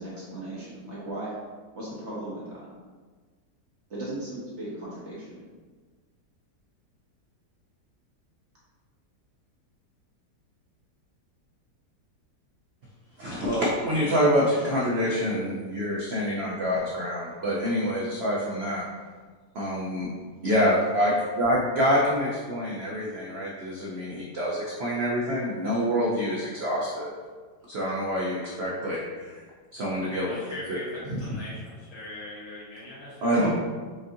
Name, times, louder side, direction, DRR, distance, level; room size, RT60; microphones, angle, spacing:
voice 1, 0.0-1.3 1.7-2.6 3.9-5.4 14.0-14.5 33.3-33.5, right 1 dB, 55° right, -7 dB, 0.9 m, -37 dB
voice 2, 13.2-18.8 19.5-20.1 20.4-27.1 27.7-29.4 29.7-30.8 31.0-31.2 33.2-33.5, equal, 75° right, -5 dB, 0.5 m, -26 dB
voice 3, 30.1-33.2, left 1 dB, 65° left, -8 dB, 1.7 m, -40 dB
5.0 x 2.5 x 2.6 m, 1.5 s
omnidirectional pair, 1.8 m